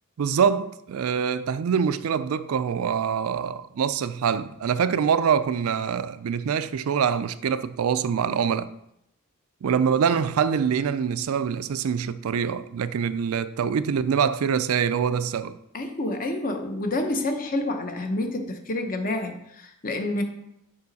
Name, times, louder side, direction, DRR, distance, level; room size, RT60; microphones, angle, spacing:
voice 1, 0.2-8.7 9.6-15.6, right 7 dB, 75° right, 0.4 m, -24 dB
voice 2, 15.7-20.2, left 2 dB, 40° left, 0.9 m, -28 dB
6.9 x 5.2 x 4.1 m
head